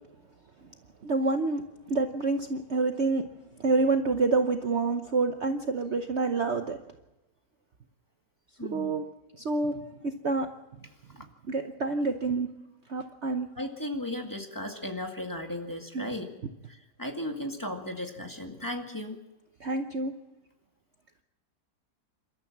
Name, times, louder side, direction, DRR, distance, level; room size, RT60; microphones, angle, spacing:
voice 1, 1.0-1.6 1.9-3.3 3.6-6.8 8.7-9.0 9.4-10.5 11.5-12.5 12.9-13.5 15.9-16.1 19.6-20.1, right 3 dB, 50° right, 6 dB, 1.1 m, -27 dB
voice 2, 8.6-8.9 13.6-16.3 16.7-19.2, left 1 dB, 10° left, 3 dB, 1.9 m, -36 dB
27.5 x 13.5 x 7.3 m, 0.98 s
omnidirectional pair, 1.8 m